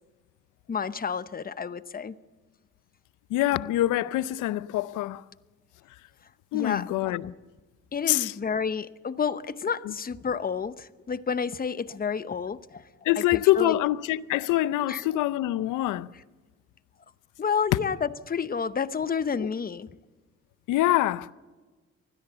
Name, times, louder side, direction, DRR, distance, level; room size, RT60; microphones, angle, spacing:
voice 1, 0.7-2.2 6.5-7.2 7.9-12.9 13.2-13.8 14.9-15.0 17.4-19.9, left 6 dB, 30° left, 0.8 m, -30 dB
voice 2, 3.3-5.2 6.5-7.3 8.1-8.3 9.8-9.9 13.0-16.1 20.7-21.3, left 15 dB, 90° left, 0.7 m, -25 dB
24.5 x 16.5 x 6.9 m
cardioid pair, 90°, 30 cm